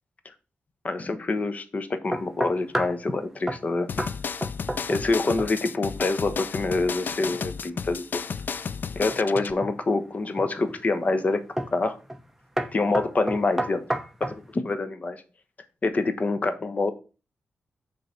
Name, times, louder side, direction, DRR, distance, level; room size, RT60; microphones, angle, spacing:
voice 1, 0.8-3.9 4.9-8.2 8.9-11.4 11.7-12.0 12.7-13.8 14.2-15.2 15.8-16.9, left 3 dB, 40° left, 9 dB, 1.1 m, -26 dB
sound 1, 2.1-3.0 3.5-3.7 4.0-4.2 4.4-5.1 5.4-5.8 9.1-9.8 10.4-10.8 11.6-11.8 12.1-12.3 12.6-14.4, right 1 dB, 5° right, 0.9 m, -30 dB
sound 2, 3.9-9.5, left 6 dB, 55° left, 0.4 m, -33 dB
6.6 x 3.9 x 5.8 m, 0.33 s
wide cardioid pair, 100°, 4 cm